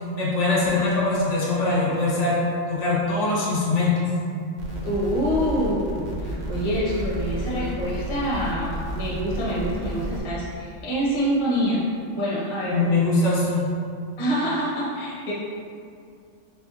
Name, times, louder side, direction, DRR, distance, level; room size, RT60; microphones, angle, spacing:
voice 1, 0.2-2.4 2.7-4.0 12.6-13.7, left 3 dB, 70° left, -6 dB, 1.1 m, -22 dB
sound 1, 4.6-10.2, right 1 dB, 55° right, 0.5 m, -32 dB
voice 2, 4.8-11.8 12.1-13.0 14.2-15.3, equal, 30° left, -6 dB, 0.6 m, -26 dB
3.5 x 3.2 x 2.3 m, 2.4 s
omnidirectional pair, 1.3 m